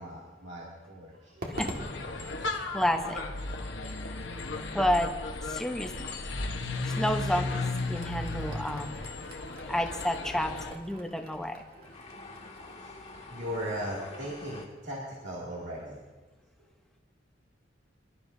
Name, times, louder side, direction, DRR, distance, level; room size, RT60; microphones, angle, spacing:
voice 1, 0.0-1.4 6.4-7.0 9.4-9.6 12.7-12.9 13.3-16.0, equal, 70° right, -6 dB, 2.5 m, -39 dB
Crowd / Fireworks, 1.4-15.8, right 1 dB, 55° right, 1.9 m, -48 dB
sound 1, 1.5-10.7, left 2 dB, 70° left, 1.2 m, -35 dB
voice 2, 2.7-3.2 4.7-5.1 5.4-6.1 6.8-9.0 9.7-11.6, equal, 5° left, 5 dB, 0.9 m, -30 dB
sound 2, 5.9-14.7, left 2 dB, 40° left, 1.8 m, -51 dB
24.0 x 12.0 x 2.7 m, 1.3 s
head